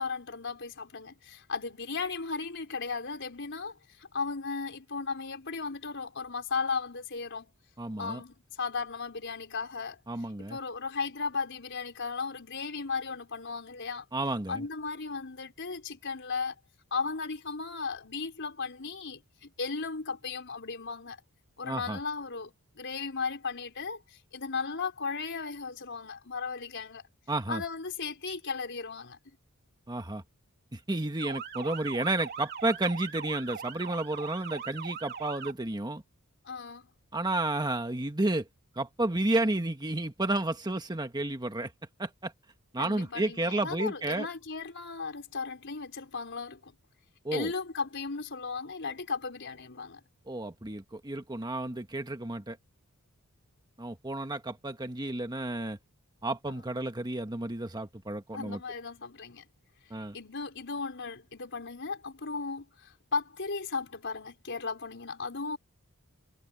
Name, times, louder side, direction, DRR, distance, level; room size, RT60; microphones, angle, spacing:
voice 1, 0.0-7.5 8.0-10.0 10.4-14.0 14.5-16.5 16.9-21.2 21.6-27.1 27.5-29.2 36.4-36.9 42.8-46.7 47.3-50.0 58.3-59.5 60.1-65.6, left 4 dB, 55° left, 4.7 m, -36 dB
voice 2, 7.8-8.2 10.1-10.6 14.1-14.7 21.6-22.0 27.3-27.6 29.9-30.2 30.7-36.0 37.1-38.5 38.7-41.7 42.0-42.3 42.7-44.3 47.2-47.5 50.3-52.6 53.8-55.8 56.2-58.6 59.9-60.1, right 2 dB, 20° right, 1.4 m, -31 dB
Motor vehicle (road) / Siren, 31.2-35.5, right 6 dB, 50° right, 3.2 m, -40 dB
head